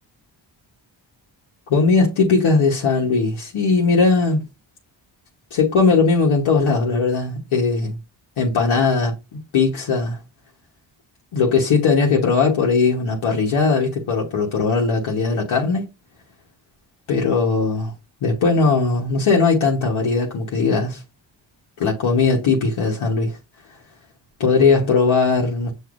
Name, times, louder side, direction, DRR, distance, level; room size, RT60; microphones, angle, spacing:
voice 1, 1.7-4.4 5.5-8.0 8.4-9.1 9.5-10.2 11.3-15.9 17.1-17.9 18.2-21.0 21.8-23.4 24.4-25.7, left 4 dB, 85° left, 1.1 m, -19 dB
6.2 x 2.6 x 2.5 m
cardioid pair, 55°, 48 cm